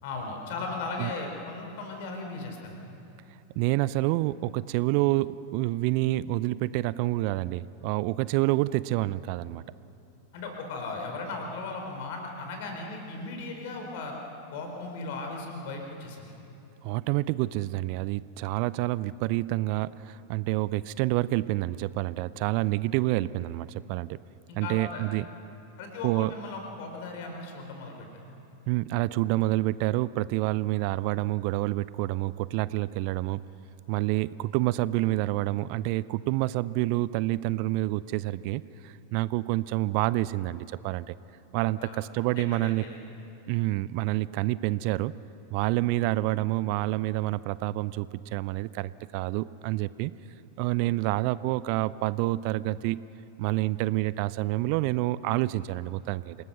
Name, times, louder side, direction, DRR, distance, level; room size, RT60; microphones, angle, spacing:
voice 1, 0.0-2.8 10.3-14.2 14.5-16.3 24.5-25.1 25.8-28.1 41.8-43.0, left 3 dB, 50° left, 3 dB, 4.3 m, -37 dB
voice 2, 3.6-9.6 16.8-24.2 24.6-25.3 26.0-26.3 28.7-33.4 33.9-41.1 41.5-42.8 43.5-45.1 45.5-50.1 50.6-53.0 53.4-56.4, right 18 dB, 45° right, 19 dB, 0.4 m, -28 dB
27.5 x 19.5 x 6.4 m, 2.8 s
figure-of-eight pair, 90°, 0 cm